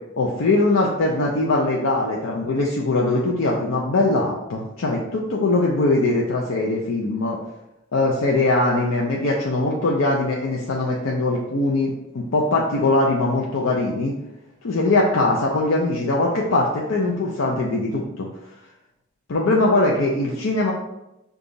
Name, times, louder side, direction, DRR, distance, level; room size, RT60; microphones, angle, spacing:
voice 1, 0.2-7.4 7.9-14.1 14.6-18.3 19.3-20.7, left 2 dB, 80° left, -2 dB, 0.6 m, -21 dB
5.3 x 2.4 x 3.9 m, 0.92 s
head